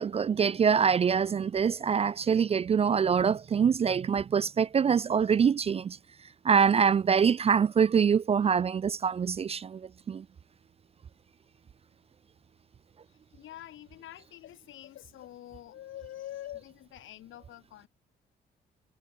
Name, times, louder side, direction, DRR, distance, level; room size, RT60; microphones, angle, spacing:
voice 1, 0.0-6.0 6.4-9.8 10.1-10.2, right 7 dB, 30° right, 0.3 m, -24 dB
voice 2, 13.1-17.9, left 13 dB, 80° left, 4.6 m, -46 dB
cardioid pair, 90°, 20 cm